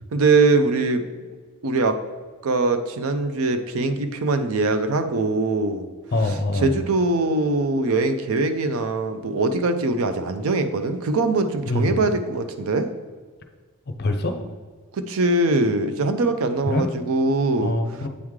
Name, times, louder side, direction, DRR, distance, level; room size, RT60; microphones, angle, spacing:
voice 1, 0.1-1.0 1.6-2.0 2.4-5.9 6.6-12.9 14.9-17.7, right 3 dB, 70° right, 8 dB, 0.5 m, -22 dB
voice 2, 6.1-6.7 11.7-12.0 14.0-14.3 16.7-16.9 17.6-18.1, left 2 dB, 45° left, 6 dB, 0.6 m, -23 dB
8.2 x 3.1 x 3.6 m, 1.5 s
head